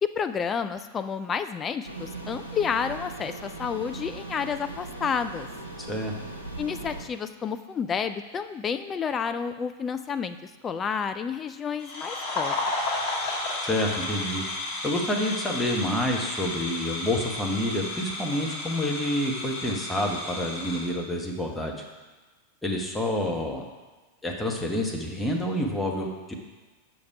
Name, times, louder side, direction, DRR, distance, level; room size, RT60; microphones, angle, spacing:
voice 1, 0.0-5.5 6.6-12.6, left 6 dB, 20° left, 10 dB, 0.4 m, -30 dB
sound 1, 1.8-7.0, right 2 dB, 90° right, 0.9 m, -39 dB
voice 2, 5.8-6.1 13.6-21.8 22.6-23.7 24.2-26.3, left 1 dB, 5° left, -1 dB, 1.1 m, -28 dB
sound 2, 11.8-20.9, left 2 dB, 40° left, 2.0 m, -32 dB
7.1 x 5.0 x 4.7 m, 1.3 s
figure-of-eight pair, 90°, 0 cm